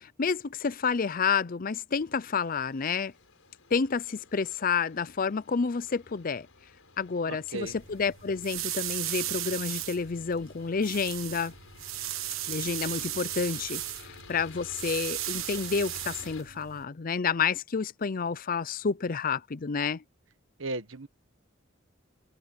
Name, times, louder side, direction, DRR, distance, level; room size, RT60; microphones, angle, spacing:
voice 1, 0.0-3.1 3.7-6.5 7.0-11.5 12.5-20.0, left 5 dB, 45° left, 0.5 m, -29 dB
sound 1, 1.9-16.4, left 4 dB, 80° left, 5.0 m, -52 dB
voice 2, 7.3-7.8 20.6-21.1, right 2 dB, 70° right, 1.4 m, -35 dB
sound 2, 7.6-16.8, right 13 dB, 85° right, 1.3 m, -36 dB
head